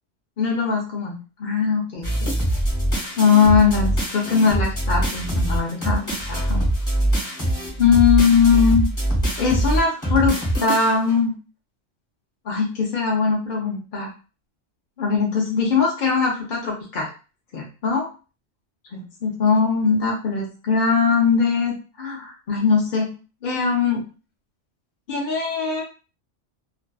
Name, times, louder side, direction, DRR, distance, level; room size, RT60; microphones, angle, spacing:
voice 1, 0.4-2.3 3.2-6.7 7.8-8.9 9.4-11.3 12.5-14.1 15.0-17.1 17.5-18.1 18.9-23.1 23.4-24.0 25.1-25.8, left 5 dB, 55° left, -2 dB, 0.6 m, -20 dB
sound 1, 2.0-11.2, right 1 dB, 15° left, 0.8 m, -23 dB
2.5 x 2.3 x 2.3 m, 0.34 s
omnidirectional pair, 1.2 m